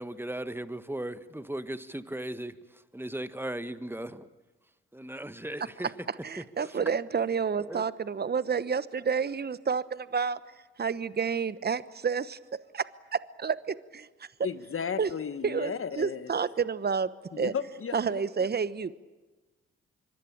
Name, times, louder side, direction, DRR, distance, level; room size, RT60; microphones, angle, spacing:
voice 1, 0.0-4.3 4.9-5.9 6.4-6.5 7.6-7.8, right 1 dB, 5° right, 11 dB, 1.6 m, -37 dB
voice 2, 6.2-10.4 10.8-12.4 12.7-14.3 15.0-15.1 15.4-17.1 17.4-17.5 17.9-18.9, right 6 dB, 35° right, 16 dB, 1.1 m, -30 dB
voice 3, 14.4-16.3 17.3-18.5, left 7 dB, 45° left, 11 dB, 1.7 m, -35 dB
25.5 x 23.5 x 8.8 m, 1.2 s
hypercardioid pair, 40°, 30 cm